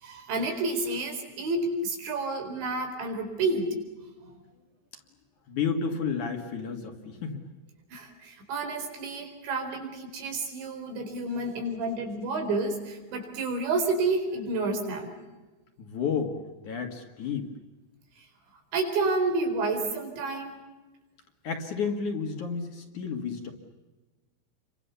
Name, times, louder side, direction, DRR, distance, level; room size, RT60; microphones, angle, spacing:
voice 1, 0.0-3.8 4.2-4.3 7.9-15.1 18.7-20.6, right 3 dB, 85° right, 4 dB, 6.6 m, -30 dB
voice 2, 5.5-7.4 15.8-16.4 16.6-17.5 21.4-23.5, left 6 dB, 50° left, 4 dB, 3.0 m, -31 dB
30.0 x 24.5 x 7.0 m, 1.2 s
omnidirectional pair, 5.1 m